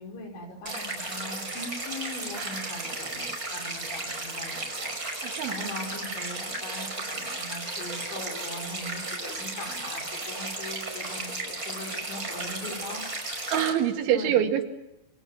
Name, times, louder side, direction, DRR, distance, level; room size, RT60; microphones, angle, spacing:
voice 1, 0.0-13.0 14.1-14.4, left 2 dB, 80° left, 4 dB, 7.8 m, -40 dB
sound 1, 0.7-13.7, right 2 dB, 20° right, 5.8 m, -34 dB
voice 2, 2.4-2.8 5.2-5.6 13.5-14.6, right 10 dB, 85° right, 6 dB, 4.6 m, -26 dB
29.0 x 25.5 x 7.4 m, 0.89 s
omnidirectional pair, 5.2 m